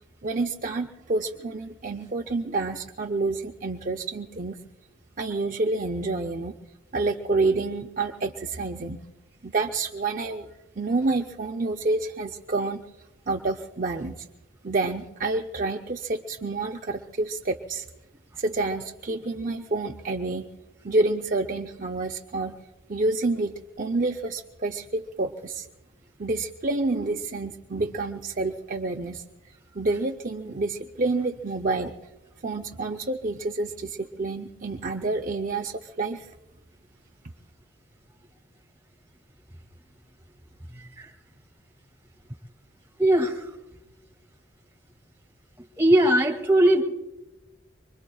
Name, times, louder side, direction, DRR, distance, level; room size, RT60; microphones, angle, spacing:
voice 1, 0.2-4.6 5.2-6.5 6.9-9.0 9.4-10.5 10.8-12.8 13.3-14.3 14.6-17.9 18.4-20.5 20.8-22.5 22.9-25.7 26.2-29.2 29.7-31.9 32.4-36.3, right 3 dB, 45° right, 2 dB, 0.6 m, -28 dB
voice 2, 43.0-43.4 45.8-46.8, right 1 dB, 10° right, 1 dB, 2.1 m, -19 dB
25.0 x 22.5 x 2.3 m, 1.0 s
head